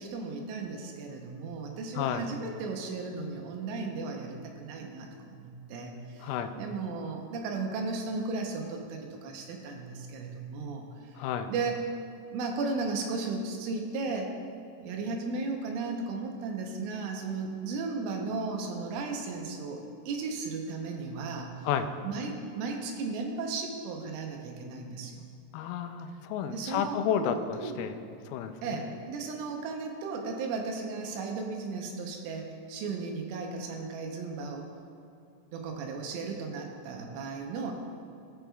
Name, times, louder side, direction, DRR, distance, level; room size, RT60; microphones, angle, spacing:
voice 1, 0.0-11.2 11.5-11.8 12.3-14.3 14.8-21.7 22.0-25.3 26.4-27.8 28.6-34.7 35.5-37.7, right 4 dB, 80° right, 2 dB, 3.1 m, -35 dB
voice 2, 2.0-2.3 6.2-6.5 11.2-11.5 21.6-21.9 25.5-27.9 28.3-28.8, left 8 dB, 85° left, 7 dB, 3.2 m, -31 dB
18.0 x 6.1 x 2.3 m, 2.5 s
omnidirectional pair, 5.9 m